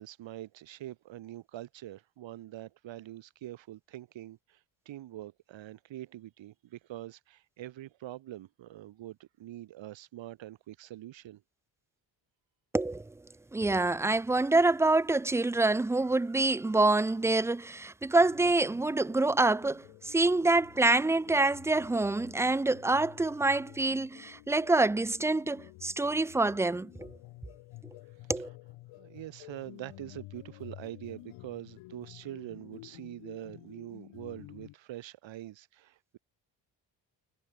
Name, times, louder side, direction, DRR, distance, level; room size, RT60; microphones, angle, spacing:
voice 1, 0.0-4.6 4.9-11.4 29.0-36.2, right 14 dB, 70° right, 2.0 m, -44 dB
voice 2, 12.7-13.1 13.5-27.1 28.3-28.5, right 2 dB, 5° right, 0.3 m, -26 dB
sound 1, 18.2-34.8, left 19 dB, 85° left, 3.4 m, -51 dB
supercardioid pair, 60°, 47 cm